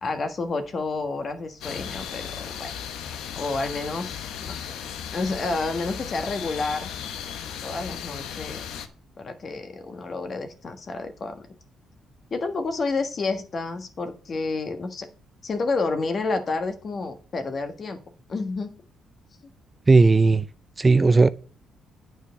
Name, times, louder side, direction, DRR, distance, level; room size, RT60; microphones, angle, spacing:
voice 1, 0.0-2.7 3.3-4.7 5.1-6.9 7.6-8.6 9.2-11.5 12.3-15.1 15.4-18.0 18.3-18.7, left 3 dB, 45° left, 1.5 m, -30 dB
sound 1, 1.6-8.9, left 8 dB, 85° left, 0.9 m, -36 dB
voice 2, 19.9-20.5 20.8-21.3, right 3 dB, 25° right, 0.4 m, -16 dB
9.3 x 4.5 x 6.8 m
cardioid pair, 90°, 0 cm